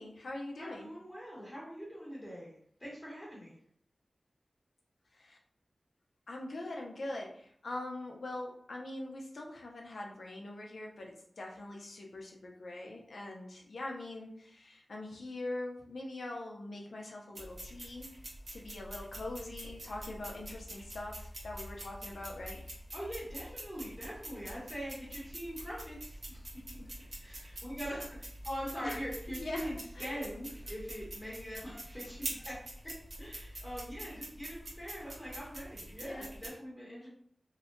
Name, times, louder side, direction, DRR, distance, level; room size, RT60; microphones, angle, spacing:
voice 1, 0.0-0.9 5.1-5.4 6.3-18.1 18.5-22.6 28.8-29.0 29.4-29.7 30.0-30.2 36.0-36.3 37.0-37.1, left 2 dB, 85° left, 0 dB, 0.4 m, -43 dB
voice 2, 0.6-3.5 22.9-26.4 27.2-32.6 33.2-37.1, equal, 20° left, -8 dB, 1.0 m, -43 dB
sound 1, 17.4-36.5, right 1 dB, 75° right, 0.9 m, -46 dB
2.7 x 2.1 x 2.4 m, 0.65 s
wide cardioid pair, 70°, 0 cm